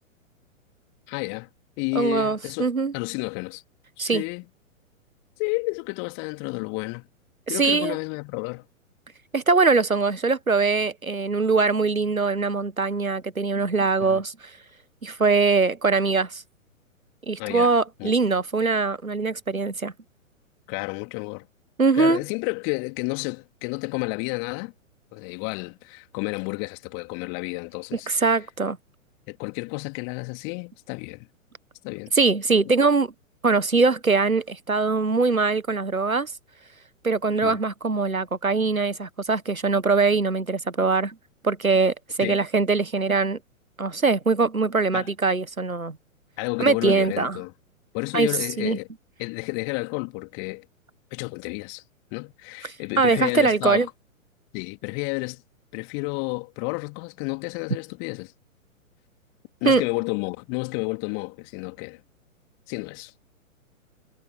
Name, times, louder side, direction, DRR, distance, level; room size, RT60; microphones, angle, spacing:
voice 1, 1.1-1.5 1.8-3.6 4.0-4.4 5.4-7.1 7.5-8.6 14.0-14.2 17.4-18.1 20.7-21.5 21.9-24.7 25.1-28.1 29.3-31.3 31.8-32.1 37.3-37.6 42.2-42.4 44.9-45.1 46.4-47.5 47.9-48.9 49.2-50.7 51.1-51.8 52.1-53.9 54.5-55.4 55.7-58.3 59.6-62.0 62.7-63.1, left 39 dB, 30° left, 3.2 m, -31 dB
voice 2, 1.9-2.9 4.0-4.2 7.6-7.9 9.3-14.3 15.0-16.4 17.3-19.9 21.8-22.2 28.1-28.8 32.1-33.1 33.4-36.3 37.0-41.1 41.4-43.4 43.8-46.0 46.6-47.4 48.1-48.3 48.6-48.8 53.0-53.9 59.6-59.8, right 4 dB, 85° right, 1.3 m, -22 dB
figure-of-eight pair, 115°, 41 cm